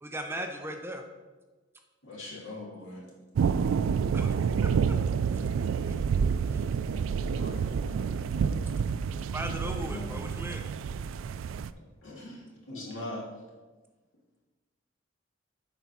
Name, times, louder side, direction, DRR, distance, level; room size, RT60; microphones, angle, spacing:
voice 1, 0.0-1.0 4.1-4.7 5.3-5.4 6.5-6.6 9.3-10.6, right 1 dB, 10° right, 0.5 m, -37 dB
voice 2, 2.0-3.1 9.6-10.1 12.0-13.3, left 2 dB, 80° left, 2.4 m, -41 dB
sound 1, 3.4-11.7, right 6 dB, 85° right, 0.3 m, -28 dB
voice 3, 7.1-9.1, equal, 35° left, 0.9 m, -51 dB
8.2 x 4.0 x 6.0 m
head